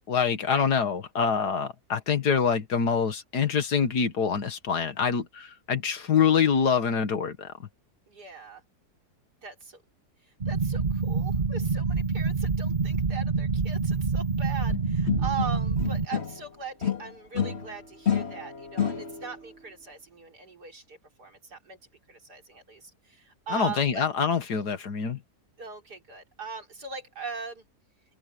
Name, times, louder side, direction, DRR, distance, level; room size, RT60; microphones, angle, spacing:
voice 1, 0.0-7.5 23.5-25.2, left 6 dB, 80° left, 2.2 m, -25 dB
voice 2, 8.1-8.6 9.4-9.8 10.5-21.8 22.1-24.1 25.6-27.7, right 6 dB, 80° right, 4.2 m, -40 dB
sound 1, 10.4-16.1, right 4 dB, 35° right, 1.1 m, -27 dB
sound 2, 14.7-16.5 16.8-19.4, left 8 dB, 40° left, 2.1 m, -30 dB
omnidirectional pair, 1.7 m